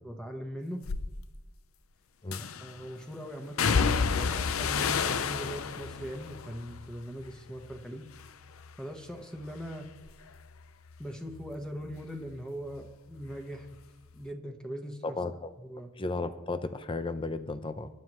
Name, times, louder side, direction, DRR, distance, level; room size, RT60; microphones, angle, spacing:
voice 1, 0.0-0.8 2.4-8.1 8.8-9.8 11.0-13.7 14.1-15.0 15.6-15.9, equal, 5° left, 2 dB, 1.2 m, -40 dB
sound 1, 0.8-1.1 2.3-2.8 3.6-7.8 8.1-8.8 9.1-12.4 12.7-13.8 14.1-14.2, left 5 dB, 85° left, 0.7 m, -32 dB
voice 2, 15.0-15.5 16.0-17.9, left 3 dB, 25° left, 11 dB, 0.6 m, -34 dB
24.5 x 11.5 x 3.1 m, 1.1 s
head